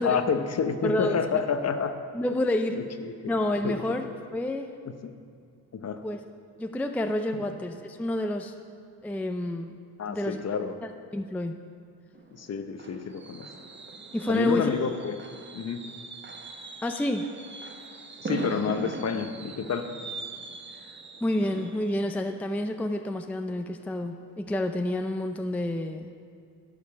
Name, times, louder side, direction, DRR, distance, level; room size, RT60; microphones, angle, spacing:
voice 1, 0.0-1.9 2.7-3.3 3.6-4.0 4.9-5.2 5.8-6.0 7.3-7.5 10.0-10.8 12.3-13.5 14.3-15.2 15.5-15.8 18.2-19.9, left 6 dB, 40° left, 8 dB, 0.8 m, -29 dB
voice 2, 0.8-1.4 2.1-2.8 3.3-4.7 6.0-6.2 6.6-8.5 9.0-9.7 10.1-10.4 10.8-11.6 14.1-14.7 16.8-17.3 21.2-26.1, left 1 dB, 5° left, 6 dB, 0.4 m, -29 dB
Fireworks, 12.1-23.8 24.2-24.5 24.8-24.9, right 4 dB, 30° right, 0.9 m, -41 dB
11.5 x 5.2 x 7.0 m, 2.4 s
supercardioid pair, 75°, 40 cm